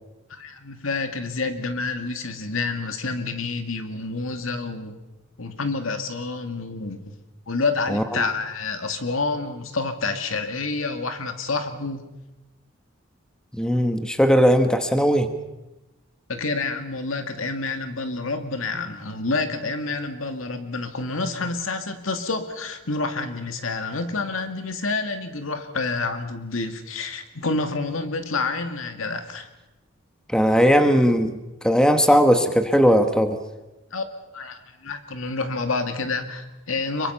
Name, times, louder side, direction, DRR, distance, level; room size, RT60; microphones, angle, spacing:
voice 1, 0.3-4.9 5.4-7.1 7.5-12.0 16.3-29.5 33.9-34.0 34.3-37.1, left 3 dB, 90° left, 6 dB, 2.3 m, -28 dB
voice 2, 7.9-8.2 13.5-15.3 30.3-31.4 31.6-33.4, equal, 5° left, 7 dB, 1.3 m, -18 dB
26.0 x 23.0 x 5.8 m, 1.0 s
head